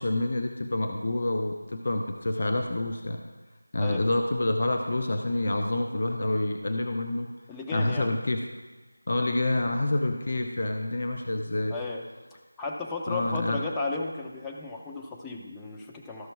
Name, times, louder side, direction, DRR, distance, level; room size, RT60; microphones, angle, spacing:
voice 1, 0.0-3.2 3.7-7.3 7.7-8.5 9.1-11.7 13.1-13.6, left 2 dB, 45° left, 4 dB, 0.7 m, -27 dB
voice 2, 3.8-4.1 7.5-8.1 11.7-12.0 12.6-16.3, left 3 dB, 5° left, -1 dB, 0.6 m, -34 dB
13.0 x 6.0 x 4.6 m, 1.3 s
figure-of-eight pair, 170°, 0 cm